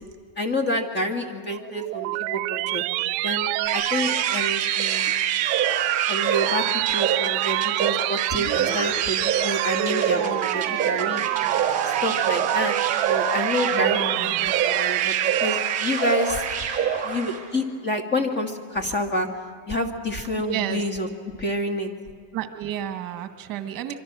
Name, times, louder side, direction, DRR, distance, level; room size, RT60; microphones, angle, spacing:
voice 1, 0.4-5.1 6.1-11.2 11.8-12.7 13.1-16.4 17.0-19.3 19.7-21.1 21.4-21.9, left 1 dB, 20° left, 5 dB, 1.9 m, -28 dB
sound 1, 1.5-16.2, right 22 dB, 70° right, 0.5 m, -26 dB
sound 2, 3.6-17.5, right 7 dB, 15° right, 4.0 m, -27 dB
voice 2, 13.7-14.5 20.4-20.8 22.3-23.9, right 11 dB, 45° right, 7 dB, 1.7 m, -32 dB
26.0 x 24.5 x 6.2 m, 2.1 s
cardioid pair, 160°, 46 cm